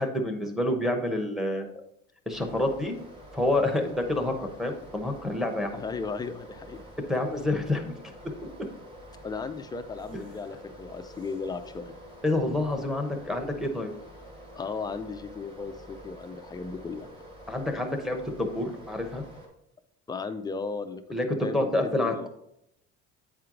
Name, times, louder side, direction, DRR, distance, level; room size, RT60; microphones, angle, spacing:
voice 1, 0.0-1.7 2.3-2.9 3.3-5.8 7.1-7.9 12.2-13.9 17.5-19.2 21.1-21.3 21.5-22.3, left 1 dB, ahead, 3 dB, 0.9 m, -28 dB
sound 1, 2.3-19.5, equal, 20° right, 1.4 m, -47 dB
voice 2, 5.7-6.9 9.2-11.9 14.5-17.1 20.1-21.0 21.4-22.3, left 4 dB, 15° left, 8 dB, 0.3 m, -36 dB
8.6 x 4.5 x 3.7 m, 0.77 s
cardioid pair, 145°, 29 cm